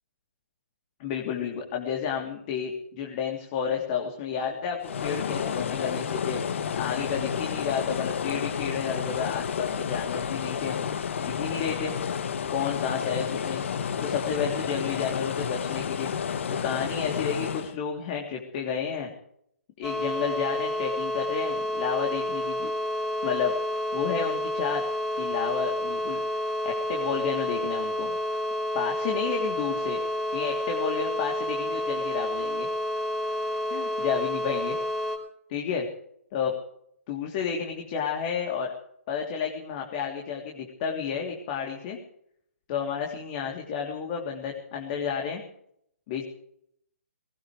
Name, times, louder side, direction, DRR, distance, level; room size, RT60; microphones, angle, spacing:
voice 1, 1.0-6.4 6.7-10.7 11.2-11.9 12.5-13.6 14.0-16.1 16.5-19.1 19.8-22.7 23.2-23.5 23.9-24.8 25.2-26.2 26.6-28.1 28.7-30.0 30.3-32.7 33.7-34.8 35.5-35.9 36.3-36.5 37.1-38.7 39.1-42.0 42.7-45.4 46.1-46.2, left 7 dB, 35° left, 1 dB, 3.2 m, -31 dB
sound 1, 4.8-17.7, left 7 dB, 60° left, 1.4 m, -31 dB
sound 2, 19.8-35.2, left 1 dB, 5° right, 4.9 m, -30 dB
20.0 x 19.0 x 3.3 m, 0.68 s
figure-of-eight pair, 135°, 8 cm